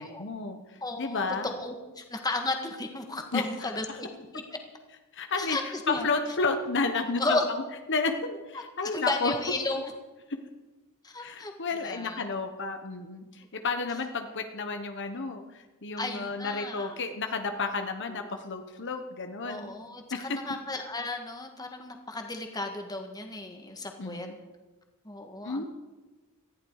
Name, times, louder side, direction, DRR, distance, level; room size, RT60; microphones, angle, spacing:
voice 1, 0.0-1.5 3.3-3.7 5.1-7.4 7.9-9.3 11.2-19.7 20.1-20.4 24.0-24.3 25.4-25.7, left 4 dB, 55° left, 6 dB, 1.2 m, -32 dB
voice 2, 0.8-4.1 5.4-6.1 7.2-7.5 8.5-9.9 11.0-11.5 11.8-12.2 16.0-17.0 18.1-18.3 19.4-24.3 25.0-25.7, left 2 dB, 15° left, 4 dB, 1.8 m, -34 dB
19.0 x 14.5 x 4.8 m, 1.2 s
head